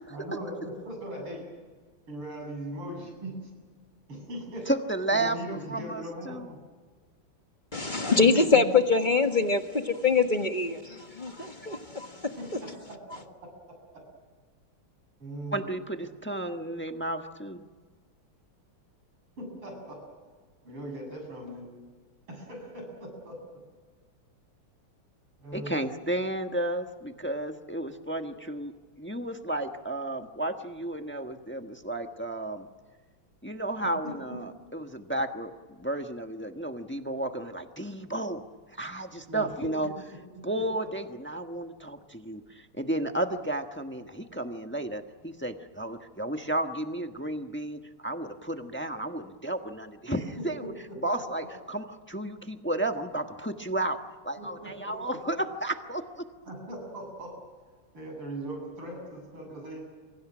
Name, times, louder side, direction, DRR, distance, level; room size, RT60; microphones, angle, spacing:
voice 1, 0.1-1.5 2.1-3.4 4.1-4.7 5.1-6.6 8.1-8.6 12.4-13.5 15.2-15.7 19.4-20.0 20.6-21.7 22.3-23.4 25.4-25.8 34.0-34.1 39.3-39.7 40.3-40.5 50.1-51.2 54.4-55.2 56.5-57.5 57.9-59.9, right 1 dB, 75° right, 8.6 m, -39 dB
voice 2, 4.7-6.5 15.5-17.6 25.5-28.7 29.0-32.7 33.4-35.5 35.8-38.4 38.8-39.9 40.4-50.7 51.0-54.0 54.2-56.3, right 1 dB, 10° left, 0.8 m, -32 dB
voice 3, 7.7-12.3, left 4 dB, 25° left, 1.3 m, -24 dB
29.0 x 25.0 x 6.2 m
omnidirectional pair, 2.4 m